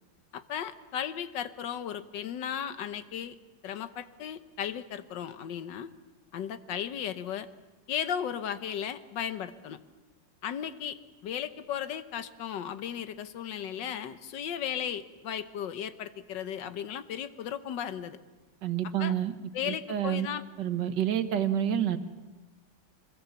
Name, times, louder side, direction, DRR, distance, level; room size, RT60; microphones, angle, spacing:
voice 1, 0.3-3.3 3.6-5.9 6.3-7.5 7.9-9.8 10.4-11.0 11.2-18.2 19.0-19.1 19.5-20.4, left 9 dB, 80° left, 11 dB, 1.7 m, -35 dB
voice 2, 18.6-19.3 19.7-20.3 20.6-22.0, right 10 dB, 70° right, 10 dB, 1.8 m, -28 dB
24.0 x 22.0 x 7.2 m, 1.2 s
omnidirectional pair, 1.9 m